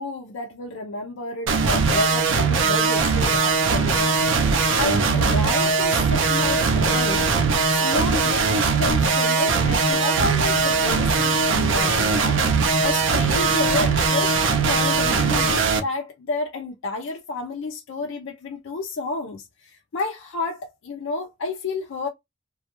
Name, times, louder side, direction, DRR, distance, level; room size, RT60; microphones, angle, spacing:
voice 1, 0.0-4.2 4.8-7.3 7.7-12.4 12.8-22.1, left 3 dB, 75° left, 0.4 m, -30 dB
sound 1, 1.5-15.8, right 4 dB, 70° right, 0.5 m, -20 dB
2.2 x 2.1 x 2.8 m
head